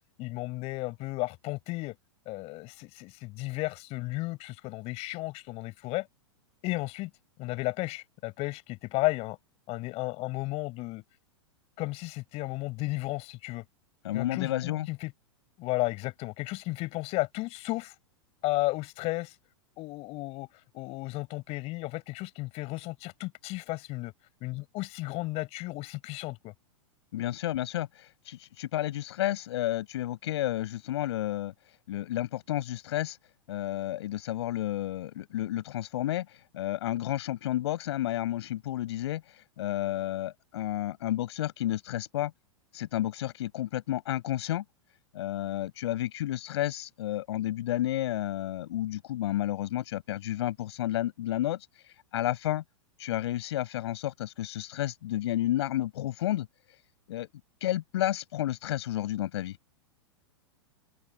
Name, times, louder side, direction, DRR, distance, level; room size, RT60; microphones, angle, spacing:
voice 1, 0.2-2.0 2.3-6.1 6.6-7.1 7.4-9.4 9.7-11.0 11.8-13.6 14.1-15.1 15.6-17.9 18.4-19.3 19.8-20.5 20.7-24.1 24.4-26.5, left 21 dB, 40° left, 7.7 m, -33 dB
voice 2, 14.0-14.9 27.1-31.5 31.9-33.2 33.5-42.3 42.7-44.6 45.1-51.6 52.1-52.6 53.0-56.5 57.1-57.3 57.6-59.6, left 14 dB, 60° left, 6.7 m, -31 dB
open air
figure-of-eight pair, 100°, 15 cm